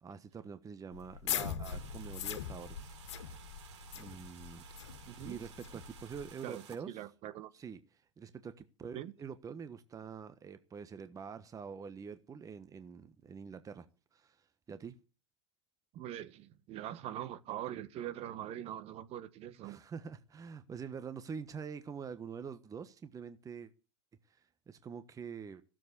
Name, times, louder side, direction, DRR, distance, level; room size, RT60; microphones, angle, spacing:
voice 1, 0.0-3.0 3.9-4.7 5.2-7.0 7.5-7.8 8.2-13.9 14.1-15.0 19.6-23.7 24.3-25.6, right 6 dB, 20° right, 1.2 m, -46 dB
sound 1, 0.9-6.3, left 9 dB, 70° left, 1.8 m, -41 dB
sound 2, 1.6-6.8, right 8 dB, 70° right, 4.1 m, -56 dB
voice 2, 5.0-5.4 6.4-7.5 8.9-9.1 15.9-19.8, right 12 dB, 40° right, 1.4 m, -43 dB
16.0 x 7.6 x 8.2 m
hypercardioid pair, 85°, 15 cm